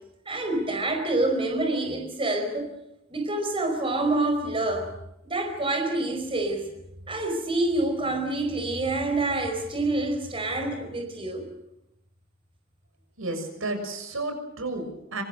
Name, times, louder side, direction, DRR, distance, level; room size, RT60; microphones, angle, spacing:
voice 1, 0.3-2.7 3.1-4.9 5.2-6.7 7.1-11.5, right 2 dB, 25° right, 4 dB, 4.9 m, -27 dB
voice 2, 13.2-15.2, right 2 dB, 75° right, 6 dB, 6.7 m, -32 dB
26.0 x 24.5 x 6.7 m, 0.87 s
head